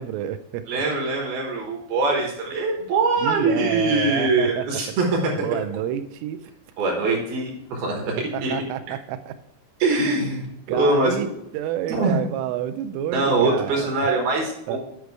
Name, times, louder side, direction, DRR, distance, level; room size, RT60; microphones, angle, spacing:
voice 1, 0.0-0.8 3.2-4.7 5.3-6.5 8.3-9.4 10.7-11.3 11.5-14.1 14.7-14.8, right 11 dB, 90° right, 10 dB, 3.1 m, -29 dB
voice 2, 0.7-5.6 6.8-8.5 9.8-10.5 10.8-11.3 11.9-12.2 13.1-14.8, right 3 dB, 70° right, 0 dB, 2.6 m, -23 dB
9.7 x 5.0 x 4.6 m, 0.81 s
omnidirectional pair, 5.5 m